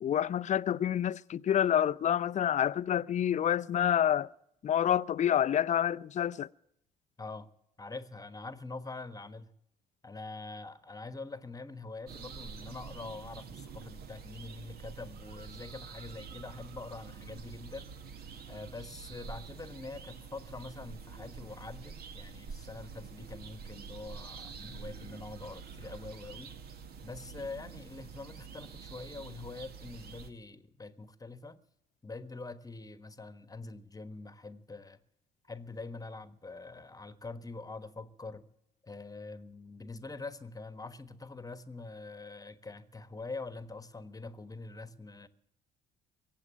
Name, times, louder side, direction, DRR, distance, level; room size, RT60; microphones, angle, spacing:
voice 1, 0.0-4.3 4.6-6.5, left 10 dB, 40° left, 0.5 m, -28 dB
voice 2, 7.8-9.5 10.0-17.9 18.5-26.6 27.0-31.6 32.0-35.0 35.5-38.4 38.8-45.3, left 3 dB, 20° left, 1.3 m, -44 dB
sound 1, 12.1-30.3, right 6 dB, 55° right, 1.4 m, -47 dB
23.5 x 8.2 x 7.1 m
hypercardioid pair, 55°, 19 cm